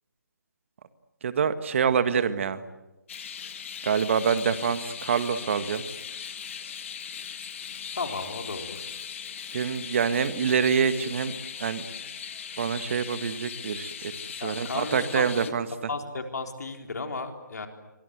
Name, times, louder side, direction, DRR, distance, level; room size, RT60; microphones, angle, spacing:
voice 1, 1.2-2.6 3.8-5.8 9.5-11.3 11.6-11.9 12.6-15.7, right 7 dB, 40° right, 11 dB, 1.8 m, -26 dB
sound 1, 3.1-15.5, left 7 dB, 40° left, 1.9 m, -39 dB
Drum kit, 3.1-11.1, left 8 dB, 25° left, 6.7 m, -56 dB
voice 2, 7.9-8.9 14.4-15.3 15.9-17.7, left 4 dB, 60° left, 4 dB, 4.1 m, -34 dB
28.5 x 24.0 x 8.1 m, 1.1 s
figure-of-eight pair, 150°, 10 cm